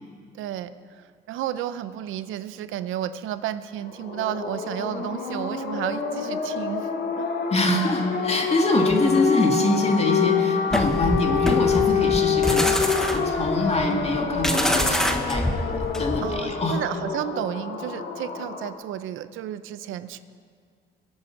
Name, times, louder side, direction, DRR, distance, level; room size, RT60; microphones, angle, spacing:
voice 1, 0.4-0.7 1.3-6.9 7.2-7.3 8.8-9.1 16.2-20.2, right 11 dB, 85° right, 13 dB, 0.7 m, -32 dB
sound 1, 3.9-18.7, left 6 dB, 60° left, 1.7 m, -26 dB
voice 2, 7.5-15.7 16.0-16.8, left 2 dB, 30° left, 2 dB, 2.2 m, -24 dB
sound 2, 10.7-16.4, equal, 5° left, 1.2 m, -26 dB
24.0 x 8.7 x 4.7 m, 2.1 s
cardioid pair, 90°, 20 cm